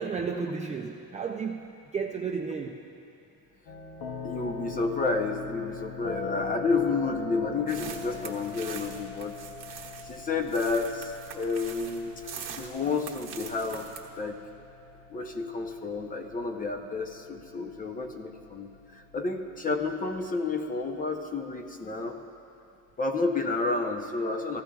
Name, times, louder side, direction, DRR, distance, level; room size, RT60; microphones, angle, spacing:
voice 1, 0.0-1.6 1.9-2.8, right 5 dB, 20° right, -1 dB, 0.3 m, -32 dB
sound 1, 3.7-20.1, left 4 dB, 80° left, 0.8 m, -42 dB
voice 2, 4.2-9.4 10.0-12.3 12.6-13.9 14.2-14.4 15.1-22.2 23.0-24.6, left 3 dB, 25° left, 4 dB, 0.6 m, -30 dB
sound 2, 7.7-14.1, right 7 dB, 45° right, 1.2 m, -43 dB
16.0 x 14.0 x 2.3 m, 2.6 s
cardioid pair, 155°, 35 cm